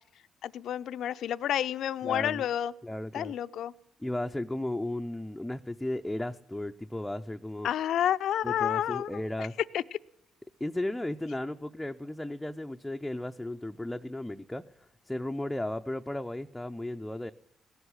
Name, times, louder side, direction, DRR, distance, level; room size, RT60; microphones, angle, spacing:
voice 1, 0.4-2.7 3.1-3.7 7.6-9.5 9.7-9.8, left 10 dB, 75° left, 14 dB, 0.5 m, -30 dB
voice 2, 2.0-2.4 2.8-3.3 4.0-7.7 8.4-9.5 10.6-17.3, left 1 dB, 5° left, 5 dB, 0.5 m, -35 dB
18.0 x 8.0 x 9.9 m, 0.83 s
cardioid pair, 90°, 0 cm